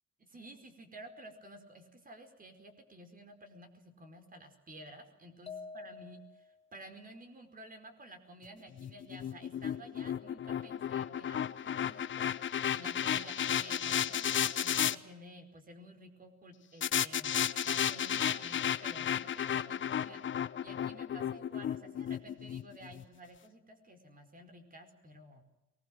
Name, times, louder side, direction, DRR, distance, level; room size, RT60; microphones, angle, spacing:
voice 1, 0.2-12.3 12.7-17.3 17.6-20.2 20.6-25.4, right 1 dB, 30° right, 7 dB, 4.8 m, -52 dB
sound 1, 5.5-6.6, left 5 dB, 20° left, 2.6 m, -47 dB
sound 2, 8.8-14.9 16.8-23.0, left 9 dB, 40° left, 0.9 m, -33 dB
23.5 x 20.5 x 7.7 m, 0.98 s
cardioid pair, 125°, 30 cm